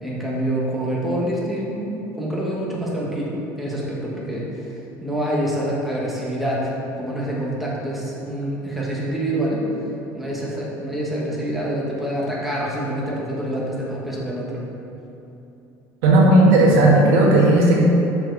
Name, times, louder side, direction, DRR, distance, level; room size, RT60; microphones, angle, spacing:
voice 1, 0.0-9.7 10.1-14.6, right 1 dB, ahead, -5 dB, 1.3 m, -26 dB
voice 2, 16.0-17.8, right 1 dB, 90° right, -3 dB, 1.5 m, -14 dB
5.9 x 4.5 x 4.6 m, 3.0 s
cardioid pair, 125°, 8 cm